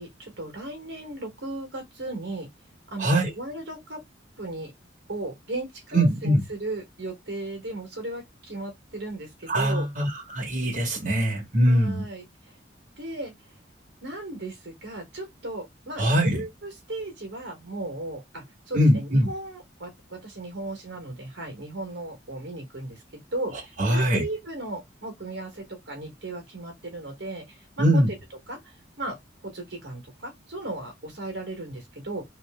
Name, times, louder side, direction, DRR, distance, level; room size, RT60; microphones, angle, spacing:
voice 1, 0.0-2.5 2.9-4.0 4.4-4.7 5.1-9.9 11.6-12.6 13.0-13.3 14.0-28.0 28.5-29.2 29.4-32.2, right 2 dB, 65° right, 1.4 m, -36 dB
voice 2, 3.0-3.3 5.9-6.4 9.5-12.0 16.0-16.4 18.7-19.3 23.8-24.2 27.8-28.1, equal, 40° right, 1.4 m, -22 dB
3.2 x 2.9 x 3.5 m
head